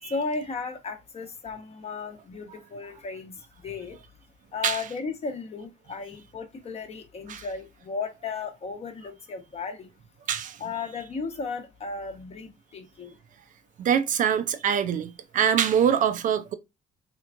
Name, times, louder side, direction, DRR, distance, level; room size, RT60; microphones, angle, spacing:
voice 1, 0.1-3.4 3.6-4.0 4.5-9.9 10.6-13.1, left 4 dB, 40° left, 0.9 m, -35 dB
voice 2, 13.8-16.5, right 8 dB, 50° right, 0.4 m, -24 dB
3.3 x 3.0 x 2.4 m
cardioid pair, 110°, 17 cm